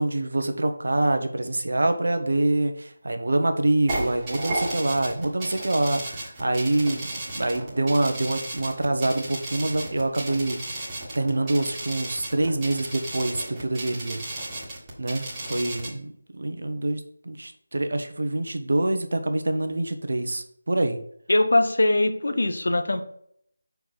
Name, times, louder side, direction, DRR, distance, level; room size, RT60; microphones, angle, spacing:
voice 1, 0.0-10.9 11.1-14.2 15.0-21.0, right 2 dB, 55° right, 6 dB, 1.0 m, -26 dB
sound 1, 3.9-15.9, right 2 dB, 15° right, 1.7 m, -34 dB
voice 2, 21.3-23.0, left 2 dB, 60° left, 7 dB, 0.9 m, -21 dB
6.3 x 4.7 x 5.5 m, 0.66 s
figure-of-eight pair, 160°, 0 cm